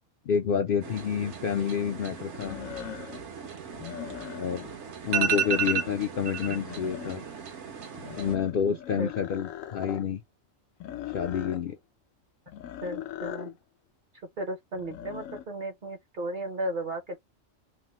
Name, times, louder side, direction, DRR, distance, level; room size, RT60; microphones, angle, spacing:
voice 1, 0.3-2.6 4.3-4.7 5.0-7.2 8.2-10.2 11.1-11.8, left 7 dB, 65° left, 0.5 m, -28 dB
sound 1, 0.8-8.3, right 8 dB, 65° right, 1.1 m, -34 dB
sound 2, 1.0-1.1 2.3-3.3 3.7-4.8 5.1-6.1 6.4-7.4 7.9-10.1 10.8-11.6 12.5-13.5 14.7-15.4, left 11 dB, 85° left, 1.0 m, -40 dB
voice 2, 12.8-13.6 14.4-17.2, right 1 dB, 45° right, 0.8 m, -35 dB
3.2 x 2.0 x 2.9 m
omnidirectional pair, 1.3 m